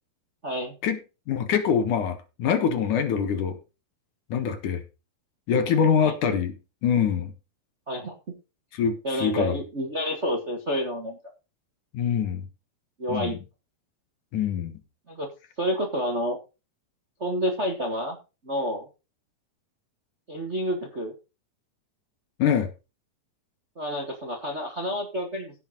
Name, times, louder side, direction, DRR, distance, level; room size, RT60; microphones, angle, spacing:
voice 1, 0.4-0.7 6.0-6.1 7.9-8.1 9.0-11.2 13.0-13.4 15.1-15.3 15.6-16.4 17.2-18.2 18.4-18.9 20.3-21.1 23.7-25.5, equal, 30° right, 1.3 m, -29 dB
voice 2, 1.3-3.6 4.3-4.8 5.5-6.6 6.8-7.3 8.7-9.6 11.9-12.4 13.1-13.3 14.3-14.7 22.4-22.7, left 7 dB, 65° left, 2.8 m, -24 dB
16.0 x 6.2 x 3.9 m
omnidirectional pair, 4.1 m